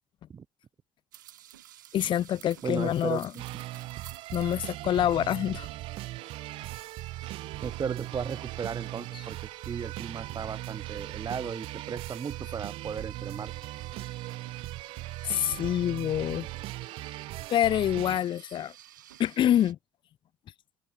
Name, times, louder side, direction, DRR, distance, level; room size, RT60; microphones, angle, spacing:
sound 1, 1.1-19.7, right 13 dB, 90° right, 4.7 m, -53 dB
voice 1, 1.9-3.3 4.3-5.7 15.3-16.5 17.5-18.7 19.2-19.8, left 11 dB, 55° left, 1.1 m, -26 dB
voice 2, 2.6-3.2 3.5-3.6 7.6-9.4 9.7-13.5, right 6 dB, 40° right, 4.9 m, -35 dB
sound 2, 3.4-18.2, right 17 dB, 65° right, 1.8 m, -39 dB
hypercardioid pair, 60°, 10 cm